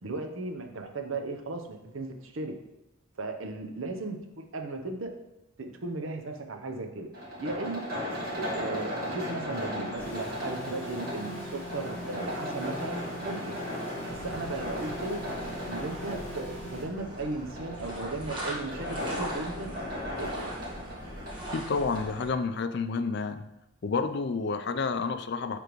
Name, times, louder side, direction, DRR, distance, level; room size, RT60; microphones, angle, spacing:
voice 1, 0.0-2.5 3.2-5.2 5.6-7.1 7.4-7.9 8.3-13.6 14.1-19.7 20.2-20.6, right 2 dB, 70° right, 5 dB, 0.7 m, -36 dB
sound 1, 7.1-22.2, equal, 45° right, 1.7 m, -37 dB
sound 2, 10.0-16.8, left 1 dB, 10° left, 1.5 m, -41 dB
sound 3, 14.1-22.3, right 1 dB, 25° right, 1.5 m, -41 dB
voice 2, 21.5-23.5 23.8-25.6, left 4 dB, 50° left, 10 dB, 0.4 m, -30 dB
10.0 x 3.4 x 3.1 m, 0.90 s
head